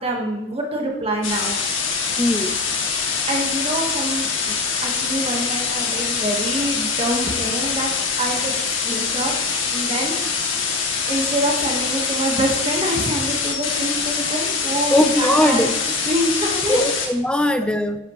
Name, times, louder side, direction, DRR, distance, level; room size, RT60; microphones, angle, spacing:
voice 1, 0.0-1.6 3.3-7.9 8.2-8.5 8.8-9.3 9.7-10.2 11.1-15.8 16.0-16.8, right 1 dB, 30° right, 0 dB, 1.4 m, -25 dB
sound 1, 1.2-17.1, left 5 dB, 80° left, 2.2 m, -24 dB
voice 2, 2.2-2.6 14.9-15.7 16.7-18.0, left 1 dB, 5° left, 8 dB, 0.5 m, -19 dB
12.0 x 10.5 x 3.1 m, 1.0 s
head